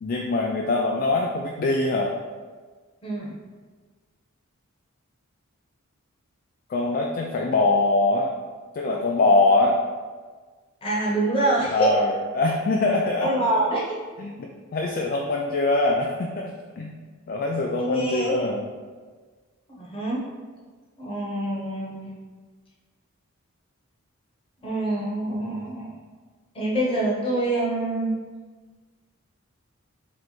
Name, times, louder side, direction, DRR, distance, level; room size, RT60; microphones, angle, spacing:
voice 1, 0.0-2.1 6.7-8.3 8.8-9.8 11.7-13.3 14.2-17.0 17.3-18.7, left 2 dB, 45° left, 0 dB, 0.3 m, -23 dB
voice 2, 3.0-3.4 10.8-11.9 13.2-14.0 17.8-18.4 19.7-20.2 21.0-22.1 24.6-26.0 26.5-28.1, right 1 dB, 25° left, -5 dB, 1.0 m, -25 dB
3.3 x 3.1 x 4.1 m, 1.4 s
head